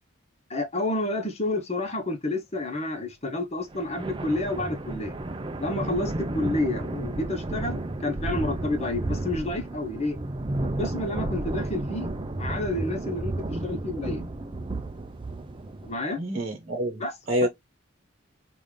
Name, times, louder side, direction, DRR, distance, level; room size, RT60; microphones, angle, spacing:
voice 1, 0.5-5.2 5.6-10.2 10.8-12.1 12.4-14.2 15.8-16.2 17.0-17.1 17.4-17.5, left 2 dB, 30° left, 1.0 m, -29 dB
sound 1, 3.7-15.9, right 2 dB, 25° right, 0.5 m, -32 dB
voice 2, 16.2-17.5, equal, 45° right, 1.2 m, -27 dB
5.3 x 2.5 x 3.3 m
head